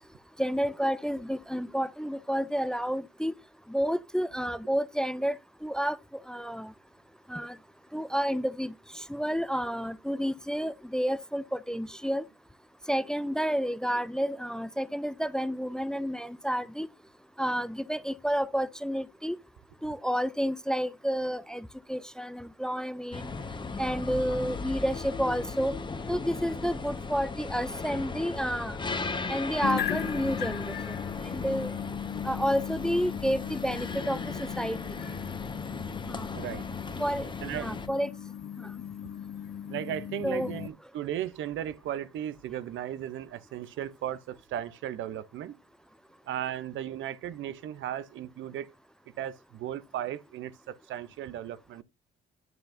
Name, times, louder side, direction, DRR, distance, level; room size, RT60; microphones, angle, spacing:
voice 1, 0.4-3.3 3.7-5.4 5.6-6.0 6.3-6.7 7.3-7.6 7.9-12.3 12.9-16.9 17.4-19.4 19.8-23.3 23.8-25.7 26.1-28.8 29.3-31.0 31.2-31.8 32.2-34.8 36.1-36.3 37.0-38.1 38.6-38.7 40.2-40.5, equal, 5° left, 0.4 m, -30 dB
sound 1, 23.1-37.9, left 4 dB, 25° left, 1.1 m, -37 dB
sound 2, 29.6-40.7, left 9 dB, 50° left, 0.5 m, -37 dB
voice 2, 36.3-36.7 37.4-37.7 39.7-45.6 46.3-48.7 49.2-51.8, right 11 dB, 75° right, 0.6 m, -36 dB
9.2 x 7.6 x 2.5 m
cardioid pair, 90°, 20 cm